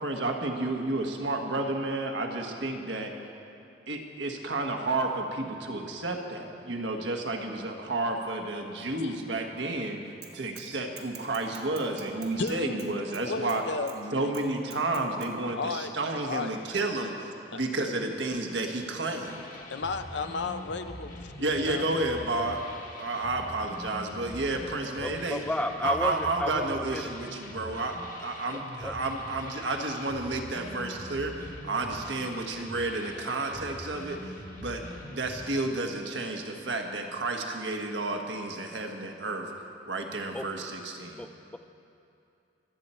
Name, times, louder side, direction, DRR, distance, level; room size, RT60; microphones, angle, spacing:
voice 1, 0.0-3.1 3.9-10.0 10.3-13.6 14.1-19.4 21.4-22.6 23.0-25.4 25.8-34.8 35.1-39.5 39.9-41.3, right 2 dB, 75° right, 2 dB, 1.4 m, -31 dB
Bicycle / Mechanisms, 10.2-10.7 11.0-13.6 13.9-14.0 14.3-15.3, right 9 dB, 55° right, 1.3 m, -47 dB
voice 2, 12.4-14.3 15.5-15.9 16.3-16.5 17.5-17.6 19.7-22.0, left 4 dB, 70° left, 9 dB, 0.7 m, -34 dB
sound 1, 19.2-35.6, left 1 dB, 45° left, 1.4 m, -44 dB
voice 3, 25.0-27.1 28.8-28.9 40.3-40.7 41.2-41.6, left 1 dB, 5° left, 8 dB, 0.3 m, -33 dB
24.5 x 8.4 x 4.4 m, 2.7 s
head